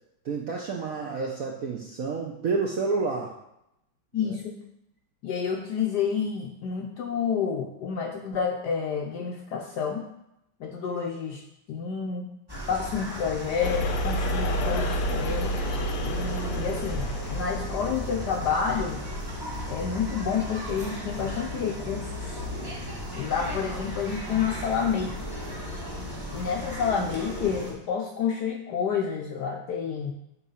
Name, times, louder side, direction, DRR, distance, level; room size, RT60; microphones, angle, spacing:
voice 1, 0.2-3.3 4.1-4.3, right 4 dB, 65° right, -1 dB, 0.8 m, -29 dB
voice 2, 4.1-4.6 5.2-10.1 10.6-11.4 11.7-12.3 12.7-15.5 16.0-19.0 19.7-22.4 23.2-25.1 26.3-30.1, left 6 dB, 70° left, 2 dB, 1.0 m, -29 dB
sound 1, 12.5-27.7, equal, 15° right, 1.1 m, -35 dB
sound 2, 13.6-18.1, equal, 90° left, 1.5 m, -29 dB
8.3 x 3.1 x 5.6 m, 0.82 s
omnidirectional pair, 2.3 m